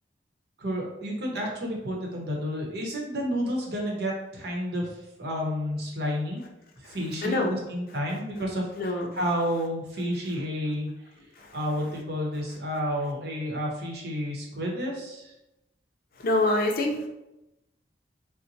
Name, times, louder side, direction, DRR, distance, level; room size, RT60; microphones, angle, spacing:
voice 1, 0.6-6.4 6.8-10.9 11.5-15.3, equal, 65° right, -1 dB, 0.9 m, -30 dB
voice 2, 7.2-7.5 8.8-9.1 11.4-11.6 16.2-17.1, left 2 dB, 55° left, 2 dB, 0.5 m, -26 dB
4.0 x 2.1 x 2.7 m, 0.91 s
head